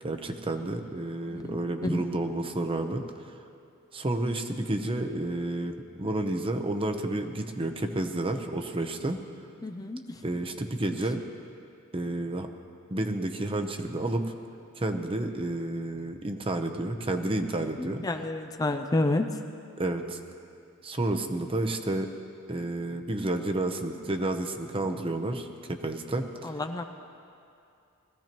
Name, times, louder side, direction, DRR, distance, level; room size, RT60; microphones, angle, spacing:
voice 1, 0.0-3.3 3.9-9.2 10.2-11.2 11.9-12.5 12.9-14.3 14.8-18.0 19.8-20.2 20.8-22.1 22.5-26.5, right 2 dB, 25° right, 5 dB, 0.8 m, -30 dB
voice 2, 9.6-10.0 18.0-19.3 26.4-26.8, left 2 dB, 15° left, 6 dB, 0.4 m, -28 dB
21.0 x 15.0 x 3.0 m, 2.5 s
head